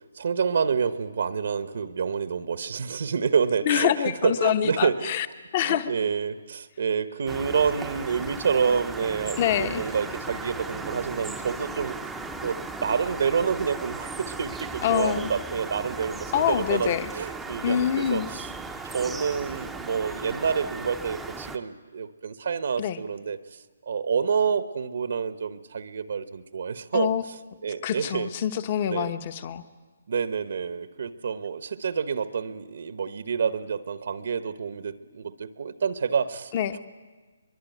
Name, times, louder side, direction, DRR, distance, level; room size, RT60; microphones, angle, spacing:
voice 1, 0.0-5.1 5.6-12.0 12.4-18.5 18.8-27.3 27.6-28.3 28.9-29.1 30.1-36.5, right 6 dB, 55° right, 11 dB, 1.0 m, -28 dB
voice 2, 3.7-5.3 5.5-5.9 9.4-9.8 14.8-15.3 16.3-17.1 17.6-18.3 22.8-23.0 26.9-27.2 27.8-29.6 36.5-36.8, left 10 dB, 30° left, 12 dB, 0.9 m, -25 dB
sound 1, 7.3-21.6, right 3 dB, 5° right, 0.7 m, -37 dB
23.0 x 22.5 x 9.3 m, 1.4 s
hypercardioid pair, 170°, 0 cm